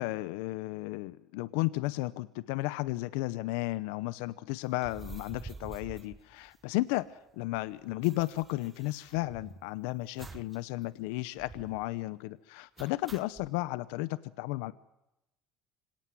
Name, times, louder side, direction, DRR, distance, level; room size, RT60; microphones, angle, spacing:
voice 1, 0.0-14.7, left 19 dB, 90° left, 17 dB, 0.8 m, -34 dB
sound 1, 4.7-7.0 7.3-7.4 7.6-9.7 10.2-10.6 10.9-11.0 11.4-11.9 12.8-13.5, right 4 dB, 20° right, 0.9 m, -48 dB
25.5 x 18.0 x 7.8 m, 0.92 s
cardioid pair, 145°, 0 cm